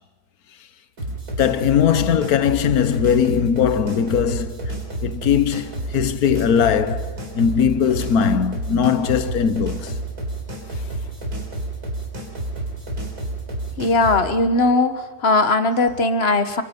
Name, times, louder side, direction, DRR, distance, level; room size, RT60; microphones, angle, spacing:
sound 1, 1.0-14.2, right 2 dB, 75° right, 4.8 m, -30 dB
voice 1, 1.1-4.7 5.0-10.0, left 8 dB, 70° left, 1.5 m, -20 dB
voice 2, 13.8-16.6, left 3 dB, 45° left, 1.5 m, -19 dB
28.5 x 25.0 x 5.4 m
omnidirectional pair, 1.6 m